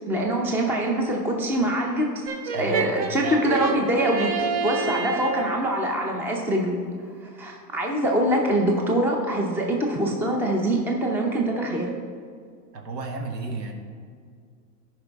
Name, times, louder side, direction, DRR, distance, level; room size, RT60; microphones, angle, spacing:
voice 1, 0.1-6.8 7.4-11.9, right 1 dB, 5° right, 1 dB, 0.6 m, -24 dB
Brass instrument, 2.3-5.6, right 5 dB, 40° right, 0.9 m, -28 dB
voice 2, 2.5-3.3 12.7-13.7, right 3 dB, 85° right, 3 dB, 1.5 m, -33 dB
13.5 x 5.4 x 3.5 m, 2.1 s
hypercardioid pair, 130°, 48 cm